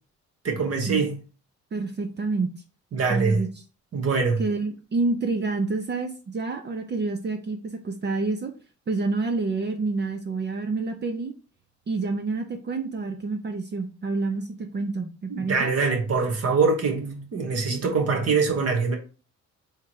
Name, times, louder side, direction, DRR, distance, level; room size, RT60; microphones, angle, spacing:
voice 1, 0.4-1.1 2.9-3.4 3.9-4.4 15.3-18.9, right 4 dB, 55° right, 1.4 m, -23 dB
voice 2, 1.7-2.5 3.1-3.5 4.4-8.5 8.9-11.3 11.9-15.7, right 3 dB, 35° right, 0.6 m, -28 dB
3.6 x 3.0 x 4.6 m
cardioid pair, 90°, 30 cm